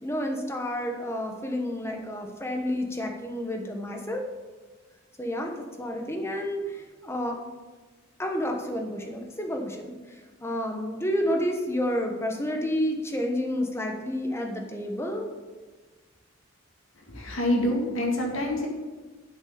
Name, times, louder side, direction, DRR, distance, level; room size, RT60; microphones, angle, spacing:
voice 1, 0.0-4.2 5.2-7.4 8.2-15.3, equal, 10° left, 2 dB, 1.1 m, -30 dB
voice 2, 16.9-18.7, left 1 dB, 75° left, 0 dB, 2.1 m, -26 dB
8.4 x 6.3 x 6.7 m, 1.3 s
head